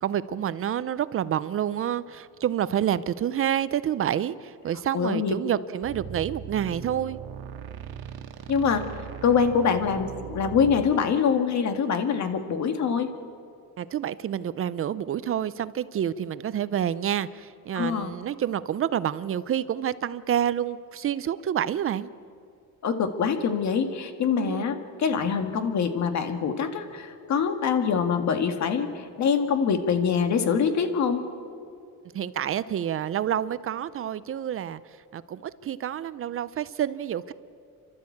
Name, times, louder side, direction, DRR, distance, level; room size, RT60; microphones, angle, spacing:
voice 1, 0.0-7.2 13.8-22.1 24.4-24.7 32.1-34.8 35.1-37.3, right 10 dB, 35° right, 16 dB, 0.6 m, -28 dB
voice 2, 4.9-5.3 8.5-8.8 9.2-13.1 17.7-18.1 22.8-31.2, left 6 dB, 50° left, 8 dB, 1.9 m, -24 dB
sound 1, 5.8-10.9, right 8 dB, 85° right, 1.7 m, -39 dB
29.5 x 12.5 x 8.5 m, 2.4 s
cardioid pair, 140°, 36 cm